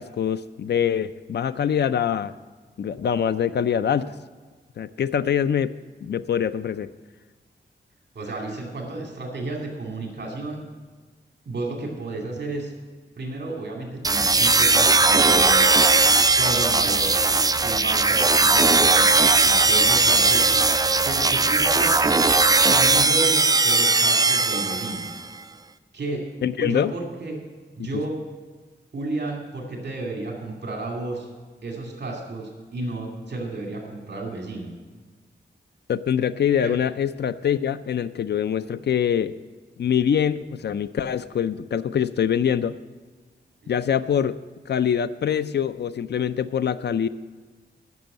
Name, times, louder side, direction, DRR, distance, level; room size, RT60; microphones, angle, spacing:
voice 1, 0.0-2.3 2.8-4.1 4.8-5.7 6.0-6.9 26.4-26.9 27.8-27.9 35.9-39.3 39.8-42.8 43.7-44.4 44.7-47.1, left 8 dB, 70° left, 13 dB, 0.4 m, -24 dB
voice 2, 8.1-10.6 11.5-12.7 13.2-15.7 16.4-17.1 17.6-20.5 21.0-25.1 25.9-26.3 26.6-27.4 27.7-28.2 28.9-31.3 31.6-34.7 36.6-36.8 43.6-43.8, right 2 dB, 65° right, 0 dB, 2.4 m, -32 dB
sound 1, 14.0-25.2, right 3 dB, 20° right, 0.4 m, -18 dB
11.0 x 6.2 x 8.9 m, 1.4 s
wide cardioid pair, 130°, 19 cm